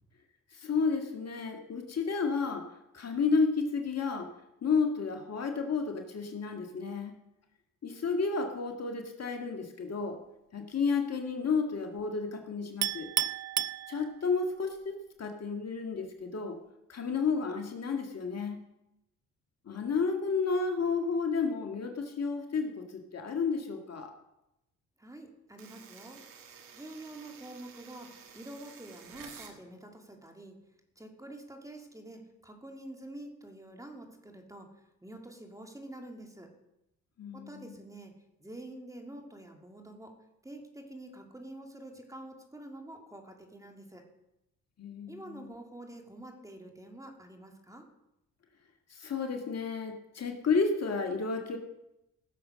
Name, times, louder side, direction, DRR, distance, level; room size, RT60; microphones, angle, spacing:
voice 1, 0.6-2.7 2.9-4.3 4.6-7.1 7.8-10.2 10.5-13.1 13.9-16.6 16.9-18.6 19.7-24.1 37.2-37.6 44.8-45.4 48.9-51.6, left 4 dB, 50° left, 4 dB, 1.9 m, -31 dB
Chink clink, 12.8-14.5, right 14 dB, 55° right, 0.4 m, -32 dB
voice 2, 25.0-26.2 26.7-30.6 31.0-34.7 35.0-36.5 37.3-38.1 38.4-40.2 40.4-44.0 45.1-47.9, right 1 dB, 10° right, 3 dB, 2.8 m, -47 dB
sound 1, 25.6-29.6, right 7 dB, 85° right, 1.8 m, -51 dB
16.0 x 7.0 x 6.4 m, 0.88 s
supercardioid pair, 60°, 33 cm